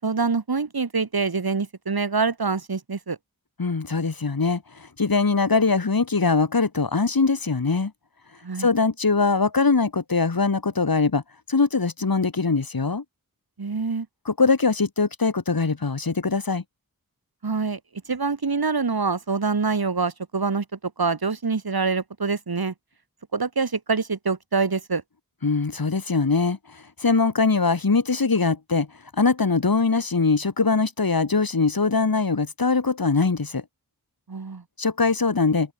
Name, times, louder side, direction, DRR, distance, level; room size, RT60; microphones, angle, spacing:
voice 1, 0.0-3.2 8.4-8.7 13.6-14.1 17.4-17.8 18.1-22.7 23.3-25.0 34.3-34.6, right 4 dB, 90° right, 7.7 m, -25 dB
voice 2, 3.6-7.9 8.6-11.2 11.5-13.0 14.3-16.6 25.4-28.9 29.1-33.6 34.8-35.7, left 4 dB, 75° left, 5.9 m, -22 dB
wide cardioid pair, 50°, 36 cm